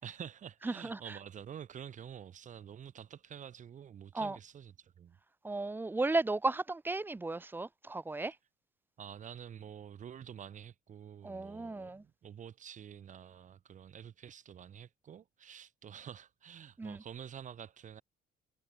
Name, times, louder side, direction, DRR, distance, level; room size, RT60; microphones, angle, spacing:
voice 1, 0.0-5.2 9.0-18.0, right 8 dB, 45° right, 3.1 m, -48 dB
voice 2, 0.6-1.2 4.1-4.4 5.4-8.4 11.2-12.0 16.8-17.0, right 2 dB, 10° right, 0.7 m, -35 dB
cardioid pair, 110°, 17 cm